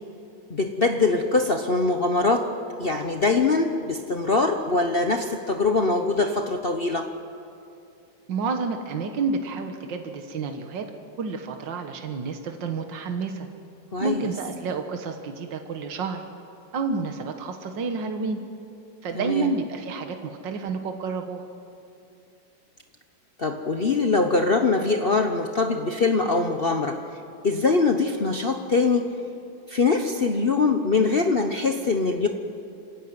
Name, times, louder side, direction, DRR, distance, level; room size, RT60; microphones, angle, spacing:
voice 1, 0.5-7.1 13.9-14.2 19.1-19.5 23.4-27.2 27.4-29.1 29.7-32.3, left 3 dB, 40° left, 5 dB, 0.9 m, -23 dB
voice 2, 8.3-10.9 11.2-13.5 14.0-16.2 16.7-18.4 19.0-21.4, right 4 dB, 75° right, 5 dB, 2.0 m, -29 dB
27.0 x 15.5 x 9.3 m, 2.6 s
omnidirectional pair, 2.0 m